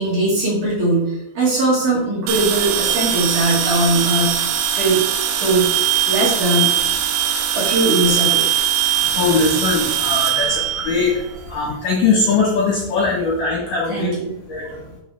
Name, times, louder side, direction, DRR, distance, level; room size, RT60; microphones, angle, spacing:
voice 1, 0.0-4.3 4.7-5.0 5.4-6.7 7.5-8.4 13.9-14.3 14.7-14.8, right 2 dB, 50° right, -6 dB, 3.1 m, -20 dB
sound 1, 2.3-11.5, right 10 dB, 80° right, 2.9 m, -21 dB
voice 2, 9.1-11.2 11.4-14.1 14.5-14.8, left 4 dB, 65° left, -3 dB, 2.1 m, -20 dB
9.8 x 5.4 x 3.4 m, 0.88 s
omnidirectional pair, 5.5 m